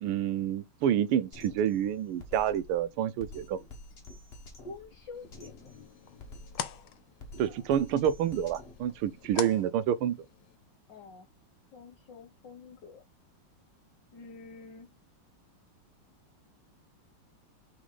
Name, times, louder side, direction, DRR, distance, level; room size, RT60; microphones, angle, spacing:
voice 1, 0.0-3.6 7.4-10.2, right 10 dB, 80° right, 1.5 m, -28 dB
Drum kit, 1.3-9.3, left 2 dB, 35° left, 1.3 m, -49 dB
voice 2, 4.6-5.7 7.4-7.7 10.9-11.3 11.7-13.0 14.1-14.9, left 3 dB, 60° left, 1.7 m, -48 dB
sound 1, 5.1-10.6, left 10 dB, 75° left, 1.6 m, -44 dB
6.1 x 4.0 x 4.0 m
omnidirectional pair, 2.4 m